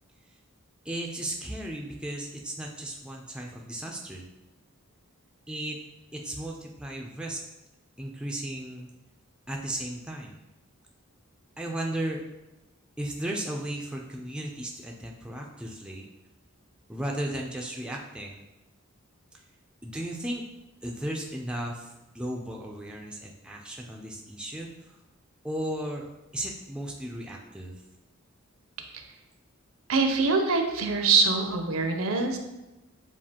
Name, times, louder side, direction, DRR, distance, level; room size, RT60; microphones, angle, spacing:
voice 1, 0.8-4.2 5.5-5.8 6.1-7.4 8.0-8.9 9.5-10.4 11.6-12.2 13.0-16.1 16.9-18.4 19.8-20.4 20.8-25.0 25.4-27.8, right 1 dB, 5° right, -1 dB, 0.3 m, -35 dB
voice 2, 29.9-32.4, right 4 dB, 70° right, 5 dB, 0.6 m, -24 dB
7.1 x 2.4 x 2.8 m, 1.0 s
head